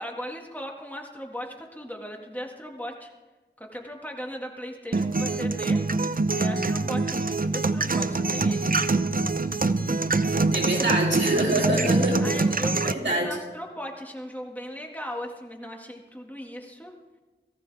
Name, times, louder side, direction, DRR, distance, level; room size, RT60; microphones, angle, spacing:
voice 1, 0.0-3.1 3.6-5.8 6.3-8.8 10.2-10.4 12.2-16.9, equal, 10° left, 0 dB, 2.0 m, -38 dB
sound 1, 4.9-12.9, right 3 dB, 50° right, 0.6 m, -24 dB
voice 2, 10.5-12.2 12.9-13.3, right 1 dB, 75° right, -1 dB, 3.2 m, -25 dB
18.5 x 15.0 x 3.5 m, 1.2 s
wide cardioid pair, 40°, 18 cm